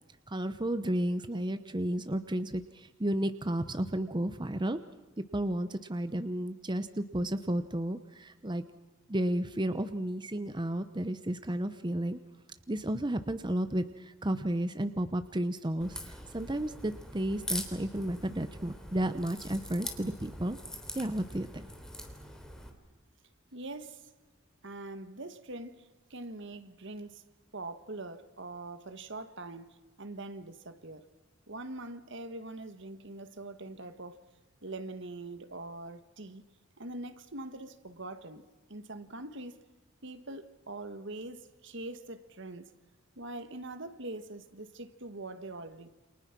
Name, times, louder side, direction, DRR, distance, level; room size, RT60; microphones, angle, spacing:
voice 1, 0.3-4.8 5.2-8.6 9.1-12.2 12.7-20.6 20.9-21.6, right 1 dB, 20° right, 0.9 m, -32 dB
Crack, 15.8-22.7, equal, 5° left, 3.3 m, -43 dB
voice 2, 23.5-24.1 24.6-27.2 27.5-31.0 31.5-34.2 34.6-36.4 36.8-39.6 40.0-42.7 43.1-45.9, right 2 dB, 60° right, 1.7 m, -43 dB
29.0 x 27.5 x 6.1 m
head